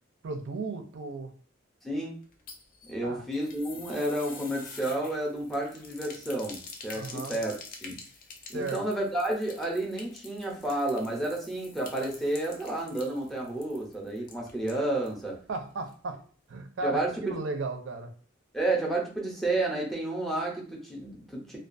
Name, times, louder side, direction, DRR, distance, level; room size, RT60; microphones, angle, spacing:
voice 1, 0.2-1.3 3.0-3.2 6.9-7.4 8.5-8.8 15.5-18.1, right 3 dB, 65° right, 7 dB, 0.4 m, -35 dB
voice 2, 1.8-2.2 2.9-7.5 7.8-8.0 8.5-15.4 16.8-17.4 18.5-21.6, right 1 dB, ahead, -2 dB, 0.6 m, -31 dB
sound 1, 2.2-15.2 15.5-15.6 15.9-16.0, left 4 dB, 45° left, 0.4 m, -47 dB
2.3 x 2.3 x 2.5 m, 0.43 s
head